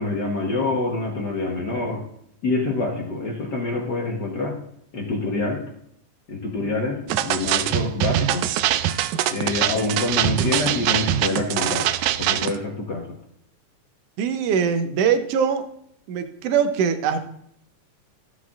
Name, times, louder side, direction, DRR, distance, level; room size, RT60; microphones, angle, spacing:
voice 1, 0.0-2.1 2.4-4.6 4.9-5.6 6.3-8.5 8.8-8.9 9.3-11.9 12.2-13.1, left 3 dB, 55° left, 1 dB, 1.2 m, -26 dB
sound 1, 7.1-12.6, right 12 dB, 85° right, 2.0 m, -23 dB
voice 2, 14.2-15.6 16.1-17.2, right 7 dB, 70° right, 8 dB, 1.7 m, -22 dB
15.0 x 7.9 x 2.5 m, 0.73 s
omnidirectional pair, 3.4 m